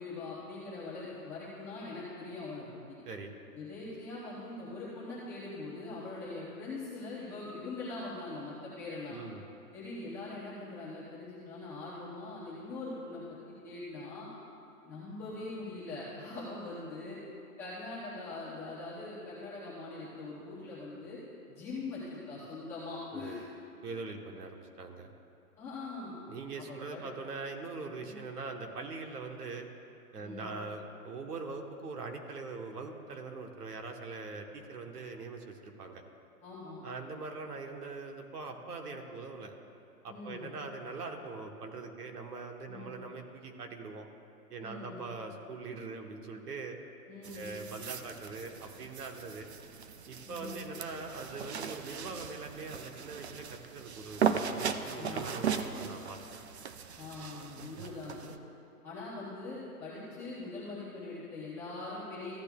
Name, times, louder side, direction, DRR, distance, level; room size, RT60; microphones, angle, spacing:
voice 1, 0.0-3.0 3.5-9.2 9.7-14.3 14.8-17.2 17.6-21.2 21.5-23.4 25.6-26.2 26.6-27.0 28.0-28.2 30.2-30.5 36.4-36.8 40.1-40.5 42.7-42.9 44.6-45.1 47.1-47.5 50.2-50.6 54.9-55.3 57.0-58.3 58.8-62.3, left 3 dB, 5° left, -11 dB, 0.7 m, -42 dB
voice 2, 9.1-9.5 23.1-23.4 23.8-25.1 26.3-29.7 30.1-36.0 36.8-39.5 40.0-44.1 44.5-46.8 47.3-49.5 50.1-56.2, right 3 dB, 80° right, 3 dB, 1.4 m, -42 dB
sound 1, 47.2-58.4, right 7 dB, 50° right, 0.4 m, -37 dB
14.5 x 8.5 x 2.3 m, 2.7 s
hypercardioid pair, 160°, 46 cm